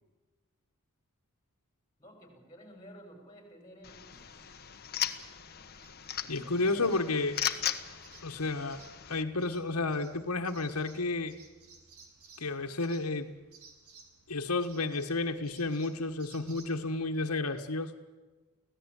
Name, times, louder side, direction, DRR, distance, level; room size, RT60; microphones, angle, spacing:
voice 1, 2.0-4.3 6.2-6.9, right 1 dB, 15° left, 4 dB, 6.4 m, -52 dB
sound 1, 3.8-9.2, left 10 dB, 45° left, 1.3 m, -37 dB
sound 2, 4.1-17.1, right 4 dB, 75° right, 3.7 m, -58 dB
voice 2, 6.3-7.4 8.2-8.8 9.0-11.4 12.4-13.3 14.3-17.9, left 3 dB, 90° left, 5 dB, 1.5 m, -31 dB
24.5 x 17.0 x 8.3 m, 1.3 s
head